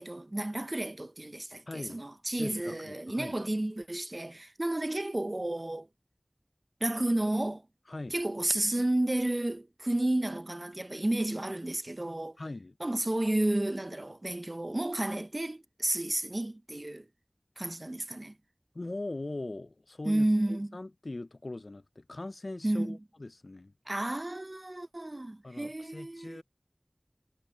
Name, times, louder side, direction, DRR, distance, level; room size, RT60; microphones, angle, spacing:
voice 1, 0.0-5.9 6.8-7.6 8.1-12.4 12.8-17.1 17.6-18.4 20.0-20.8 22.6-23.0 23.9-26.4, right 1 dB, 50° right, 0.7 m, -31 dB
voice 2, 1.7-2.0 2.4-3.4 7.9-8.2 12.4-12.7 18.7-23.7 25.4-26.4, left 2 dB, 85° left, 0.4 m, -41 dB
wide cardioid pair, 40°, 0 cm